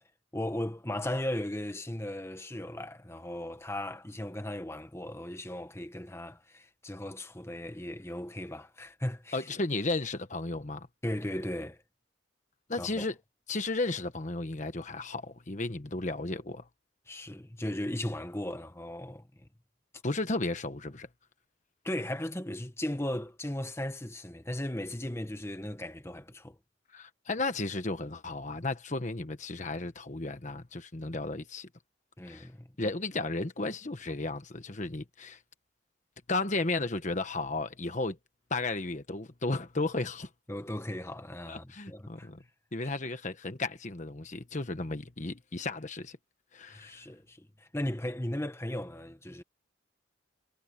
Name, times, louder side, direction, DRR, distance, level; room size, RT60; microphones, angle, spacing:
voice 1, 0.3-9.5 11.0-11.8 12.8-13.0 17.1-19.5 21.8-26.6 32.2-32.7 40.5-42.3 46.7-49.4, left 1 dB, 15° left, 1.3 m, -37 dB
voice 2, 9.3-10.9 12.7-13.1 13.5-16.6 20.0-21.1 26.9-31.7 32.3-32.5 32.8-35.4 36.3-38.2 38.5-40.3 41.5-42.4 42.7-46.2 46.5-47.0, left 2 dB, 40° left, 1.2 m, -34 dB
head